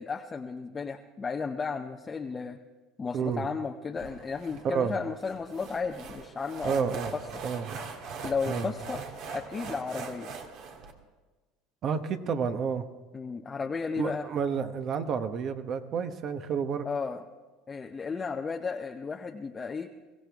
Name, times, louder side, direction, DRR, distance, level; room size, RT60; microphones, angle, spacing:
voice 1, 0.0-2.6 3.0-7.2 8.2-9.0 9.3-10.3 13.1-14.3 16.8-17.2 17.7-19.9, left 5 dB, 25° left, 3 dB, 0.7 m, -34 dB
voice 2, 3.1-3.5 4.6-4.9 6.6-7.1 7.4-7.7 8.4-8.7 11.8-12.9 14.0-16.9, right 6 dB, 45° right, 8 dB, 1.1 m, -30 dB
sound 1, 4.0-10.9, right 5 dB, 60° right, 1.9 m, -41 dB
23.0 x 16.0 x 3.5 m, 1.3 s
supercardioid pair, 105°, 0 cm